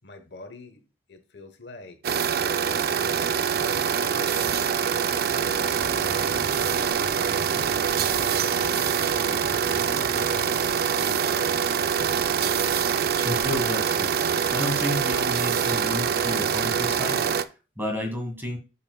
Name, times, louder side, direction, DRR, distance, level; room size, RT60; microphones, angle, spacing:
voice 1, 0.0-2.2 3.5-6.2 6.7-9.0 9.6-10.3 10.6-11.8, left 2 dB, 65° left, 1.1 m, -46 dB
sound 1, 2.0-17.4, right 7 dB, 55° right, 0.4 m, -24 dB
sound 2, 5.3-10.5, equal, 30° left, 2.5 m, -42 dB
voice 2, 13.2-14.1 14.5-17.2 17.8-18.6, left 1 dB, 10° right, 1.8 m, -31 dB
8.9 x 7.1 x 2.3 m
head